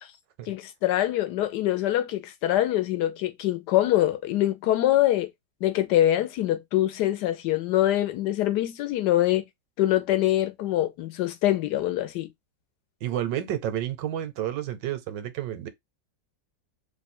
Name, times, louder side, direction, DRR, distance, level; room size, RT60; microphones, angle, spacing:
voice 1, 0.5-5.3 5.6-9.4 9.8-12.3, left 13 dB, 75° left, 1.1 m, -24 dB
voice 2, 13.0-15.7, right 11 dB, 80° right, 1.3 m, -30 dB
3.1 x 2.2 x 4.1 m
omnidirectional pair, 1.9 m